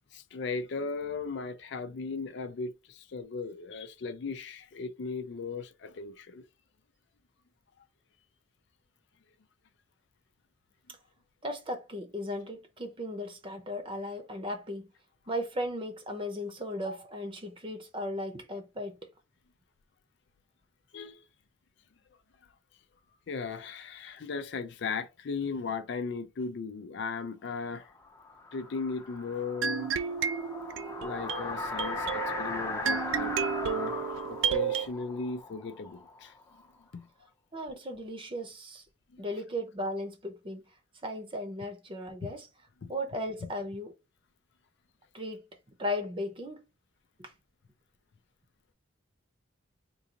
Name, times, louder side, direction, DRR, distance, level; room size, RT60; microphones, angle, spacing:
voice 1, 0.1-6.5 20.9-21.2 23.3-27.9 28.5-29.9 31.0-33.3 33.6-36.3 36.9-37.1 39.1-39.2 42.2-42.3 42.8-42.9, left 4 dB, 65° left, 0.4 m, -37 dB
voice 2, 11.4-14.9 15.3-19.0 37.5-38.8 39.2-40.6 41.0-42.5 42.9-43.9 45.1-45.4 45.8-46.6 47.2-47.3, left 1 dB, 25° right, 0.8 m, -36 dB
sound 1, 28.0-36.7, left 2 dB, 15° left, 0.7 m, -38 dB
sound 2, 29.6-34.9, right 7 dB, 75° right, 0.4 m, -32 dB
3.8 x 2.5 x 2.9 m
head